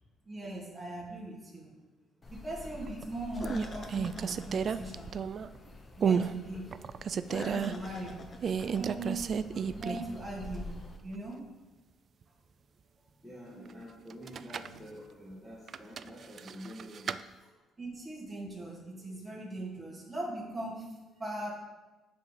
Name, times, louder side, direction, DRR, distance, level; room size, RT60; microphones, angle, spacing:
voice 1, 0.2-1.7 2.3-5.1 6.0-6.7 7.4-8.2 8.6-10.7 11.0-11.4 17.8-21.5, right 1 dB, 20° right, -3 dB, 2.8 m, -40 dB
sound 1, 2.2-11.0, left 2 dB, 30° left, 1.2 m, -46 dB
sound 2, 2.6-3.0 3.4-5.6 6.0-6.3 6.7-7.7 8.4-10.2 10.5-10.6 14.1-14.8 15.7-17.2, right 7 dB, 45° right, 0.3 m, -32 dB
voice 2, 13.0-17.5, equal, 5° right, -7 dB, 2.0 m, -48 dB
9.9 x 4.0 x 7.0 m, 1.2 s
cardioid pair, 105°, 0 cm